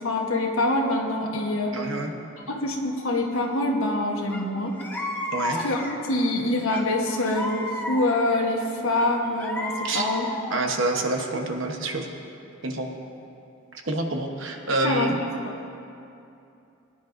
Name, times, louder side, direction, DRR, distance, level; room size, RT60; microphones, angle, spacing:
voice 1, 0.0-1.8 2.5-4.8 5.6-10.3 14.8-15.1 15.4-15.6, left 2 dB, 70° left, 0 dB, 1.2 m, -25 dB
voice 2, 1.7-2.1 5.3-5.6 9.8-10.1 10.5-12.1 12.6-12.9 13.8-15.1, right 2 dB, 60° right, 3 dB, 1.1 m, -27 dB
sound 1, 4.3-4.4 4.8-6.1 6.7-8.4 9.0-10.7, left 1 dB, 10° left, 0.8 m, -32 dB
21.5 x 10.5 x 2.6 m, 2.7 s
head